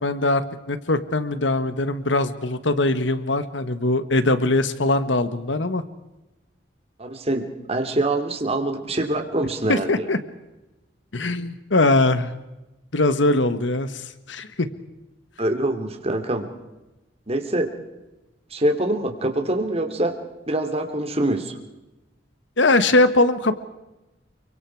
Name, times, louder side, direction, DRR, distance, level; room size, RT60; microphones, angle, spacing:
voice 1, 0.0-0.4 0.7-5.8 9.7-10.2 11.1-12.3 12.9-14.7 22.6-23.6, left 2 dB, 80° left, 12 dB, 1.5 m, -21 dB
voice 2, 7.0-10.1 15.4-16.5 17.3-17.7 18.5-20.1 20.5-21.6, right 1 dB, 35° right, 5 dB, 3.1 m, -24 dB
29.5 x 24.5 x 4.8 m, 1.0 s
head